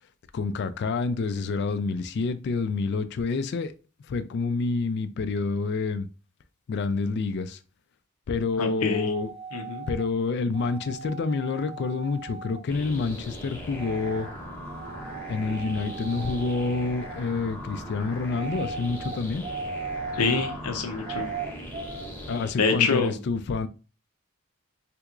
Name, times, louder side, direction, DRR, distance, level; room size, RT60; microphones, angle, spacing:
voice 1, 0.3-3.7 4.1-6.1 6.7-7.6 8.3-9.3 9.9-14.3 15.3-19.5 22.3-23.7, left 4 dB, 50° left, 0.3 m, -28 dB
voice 2, 8.6-9.1 9.5-9.8 20.1-21.3 22.6-23.2, left 4 dB, 90° left, 0.6 m, -26 dB
sound 1, 8.9-10.1 10.5-12.6 13.7-14.3 14.7-17.2 18.3-20.6 21.0-22.1, right 5 dB, 25° right, 0.3 m, -38 dB
sound 2, 12.7-22.5, equal, 10° left, 0.7 m, -39 dB
3.4 x 2.9 x 2.4 m
head